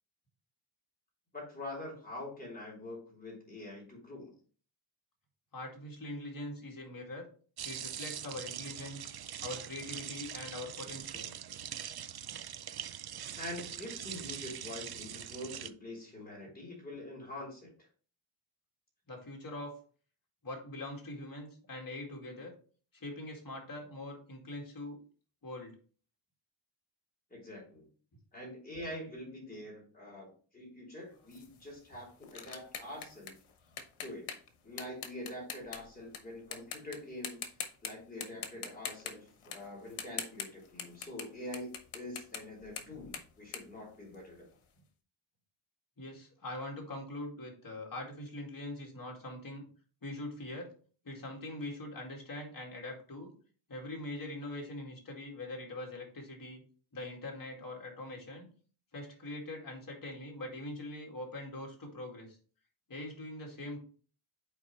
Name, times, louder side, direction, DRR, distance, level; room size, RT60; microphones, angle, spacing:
voice 1, 1.3-4.3 13.4-17.9 27.3-27.8 28.3-30.3 30.5-33.4 34.0-34.4 34.6-37.5 37.8-44.5, left 1 dB, 20° left, -3 dB, 3.8 m, -45 dB
voice 2, 5.5-7.3 7.6-9.1 9.4-11.3 19.1-19.8 20.4-22.5 22.9-25.0 25.4-25.8 46.0-49.6 50.0-50.7 51.0-53.3 53.7-56.6 56.9-58.5 58.9-62.4 62.9-63.8, left 1 dB, 40° left, 0 dB, 2.3 m, -43 dB
sound 1, 7.6-15.7, right 10 dB, 50° right, 0.5 m, -42 dB
sound 2, 31.3-36.2 36.5-37.0 37.2-37.9 38.2-44.5, left 7 dB, 80° left, 1.1 m, -43 dB
8.2 x 4.6 x 3.2 m, 0.41 s
wide cardioid pair, 130°, 49 cm